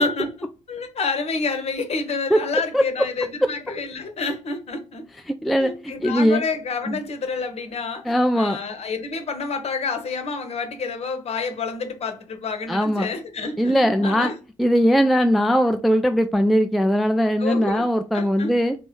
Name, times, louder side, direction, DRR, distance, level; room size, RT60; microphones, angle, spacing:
voice 1, 0.0-5.0 5.6-14.4 17.4-17.9 18.1-18.5, left 4 dB, 40° left, 0.9 m, -28 dB
voice 2, 5.4-6.4 6.9-7.0 8.1-8.6 12.7-13.1 13.6-14.3 14.6-18.8, equal, ahead, 0.3 m, -20 dB
3.3 x 3.0 x 4.6 m
figure-of-eight pair, 45°, 16 cm